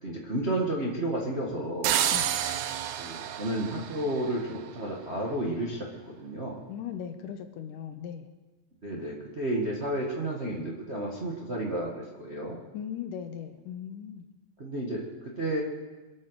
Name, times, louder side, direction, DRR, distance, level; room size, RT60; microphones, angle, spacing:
voice 1, 0.0-2.0 3.0-6.6 8.8-12.6 14.6-15.6, right 1 dB, 40° right, -3 dB, 0.9 m, -32 dB
sound 1, 1.8-4.7, right 10 dB, 90° right, 2.7 m, -30 dB
voice 2, 6.7-8.3 12.7-14.2, left 8 dB, 75° left, 7 dB, 2.2 m, -38 dB
24.0 x 8.6 x 6.4 m, 1.2 s
omnidirectional pair, 4.3 m